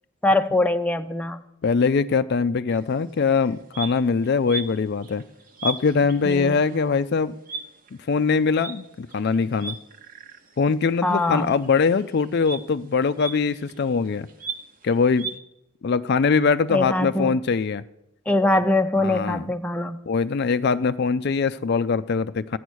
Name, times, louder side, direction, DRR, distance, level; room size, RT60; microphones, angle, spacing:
voice 1, 0.2-1.4 6.2-6.6 11.0-11.5 16.7-17.3 18.3-20.0, left 2 dB, 5° left, 6 dB, 0.6 m, -22 dB
voice 2, 1.6-5.2 5.6-7.3 8.1-9.8 10.6-14.3 14.8-15.3 15.8-17.8 19.0-19.5 20.1-22.6, left 5 dB, 50° left, 13 dB, 0.4 m, -22 dB
sound 1, 2.7-2.9 3.3-10.7 11.0-15.4, right 4 dB, 40° right, 1.0 m, -38 dB
15.0 x 9.2 x 6.3 m, 0.83 s
head